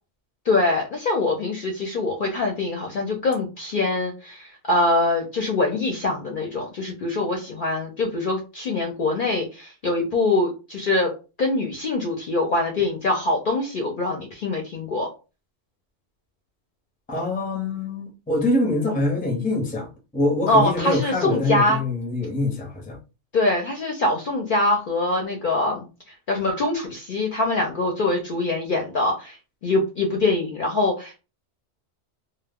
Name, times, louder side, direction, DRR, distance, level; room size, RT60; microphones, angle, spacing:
voice 1, 0.5-11.1 11.4-15.1 20.5-21.8 23.3-29.4 29.6-31.2, left 2 dB, 60° left, 0.6 m, -23 dB
voice 2, 17.1-23.0, left 2 dB, 10° left, 0.5 m, -24 dB
2.1 x 2.0 x 3.4 m
omnidirectional pair, 1.2 m